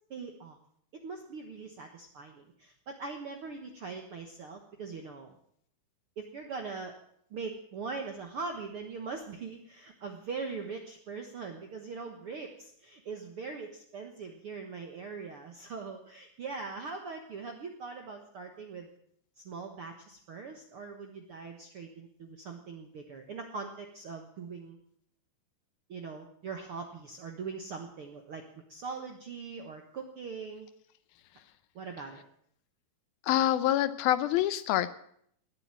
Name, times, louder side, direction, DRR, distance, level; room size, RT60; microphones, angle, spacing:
voice 1, 0.1-0.6 1.0-5.3 6.2-6.9 7.3-18.9 19.4-24.8 25.9-28.4 28.7-30.7 31.7-32.2, right 4 dB, 65° right, 4 dB, 1.4 m, -41 dB
voice 2, 33.2-34.9, left 13 dB, 80° left, 14 dB, 2.5 m, -26 dB
19.5 x 8.0 x 8.9 m, 0.67 s
omnidirectional pair, 4.4 m